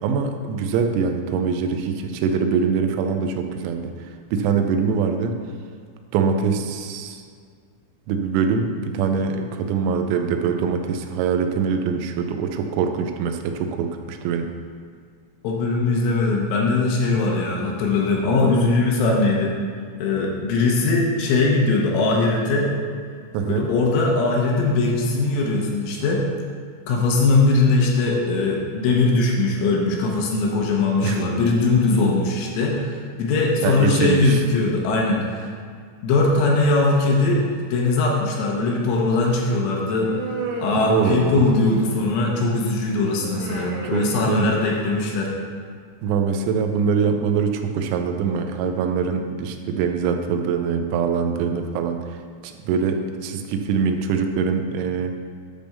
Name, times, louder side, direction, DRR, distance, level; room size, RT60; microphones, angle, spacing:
voice 1, 0.0-5.4 6.1-7.2 8.1-14.5 23.3-23.7 31.0-31.3 33.6-34.4 40.7-41.5 43.8-44.6 46.0-52.2 52.4-55.2, right 6 dB, 90° right, 5 dB, 3.4 m, -23 dB
voice 2, 15.4-19.6 20.0-22.7 23.5-26.2 26.9-35.5 36.0-40.2 40.6-45.3, left 3 dB, 75° left, -2 dB, 3.3 m, -20 dB
Human voice, 40.0-42.3 43.2-45.1, right 3 dB, 70° right, 2.7 m, -32 dB
10.5 x 3.5 x 6.5 m, 2.1 s
omnidirectional pair, 6.0 m